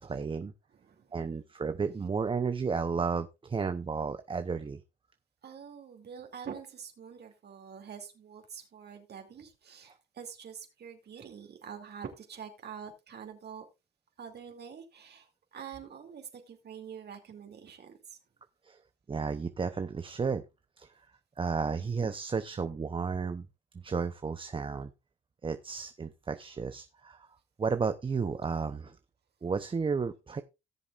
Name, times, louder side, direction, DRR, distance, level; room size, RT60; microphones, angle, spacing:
voice 1, 0.0-0.5 1.1-4.8 18.6-18.8 19.1-20.4 20.8-20.9 21.4-23.5 23.8-24.9 25.4-27.3 27.6-29.0 29.4-30.4, right 5 dB, 25° right, 0.7 m, -32 dB
voice 2, 0.7-1.1 5.4-13.6 14.2-18.2, right 7 dB, 55° right, 2.6 m, -46 dB
18.0 x 7.0 x 2.5 m
cardioid pair, 90°, 20 cm